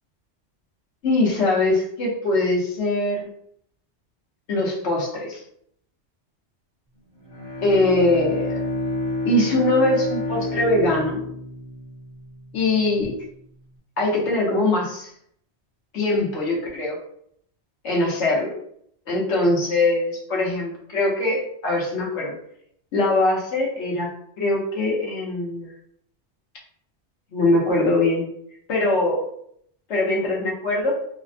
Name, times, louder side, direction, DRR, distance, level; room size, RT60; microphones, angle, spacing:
voice 1, 1.0-3.2 4.5-5.4 7.6-8.5 9.2-11.3 12.5-13.1 14.0-15.1 15.9-17.0 17.8-18.5 19.1-22.3 22.9-24.1 24.4-25.7 27.3-28.3 28.7-29.2 29.9-31.0, left 2 dB, 80° left, -3 dB, 1.2 m, -22 dB
Bowed string instrument, 7.1-12.8, left 2 dB, 50° right, 1.5 m, -29 dB
3.3 x 2.1 x 2.6 m, 0.68 s
omnidirectional pair, 1.2 m